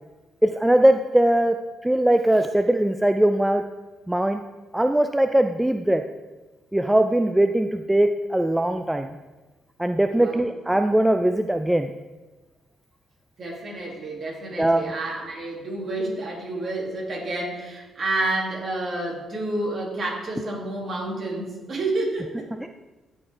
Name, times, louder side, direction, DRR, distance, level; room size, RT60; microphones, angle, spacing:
voice 1, 0.4-1.6 1.8-3.6 4.1-4.4 4.7-6.0 6.7-9.1 9.8-11.9 14.6-14.8 22.6-22.7, right 1 dB, 5° right, 6 dB, 0.3 m, -20 dB
voice 2, 13.4-22.5, right 2 dB, 45° right, -2 dB, 2.1 m, -29 dB
12.0 x 4.4 x 3.3 m, 1.2 s
cardioid pair, 90°, 0 cm